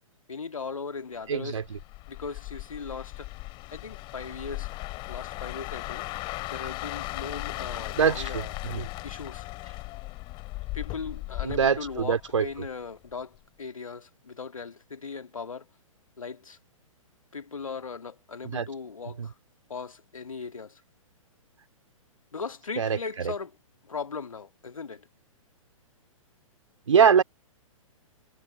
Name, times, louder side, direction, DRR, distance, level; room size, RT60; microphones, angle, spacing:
voice 1, 0.3-1.6 2.1-3.3 3.7-4.7 5.1-9.5 10.7-15.7 16.2-16.6 17.3-19.3 19.7-20.8 22.3-23.5 23.8-25.1, left 5 dB, 70° left, 2.0 m, -38 dB
voice 2, 1.3-1.8 8.0-8.9 11.4-12.5 18.4-18.7 19.2-19.3 22.8-23.3 26.9-27.2, right 7 dB, 60° right, 3.0 m, -24 dB
sound 1, 1.6-12.7 13.1-13.4, left 22 dB, 25° left, 2.8 m, -37 dB
figure-of-eight pair, 115°, 18 cm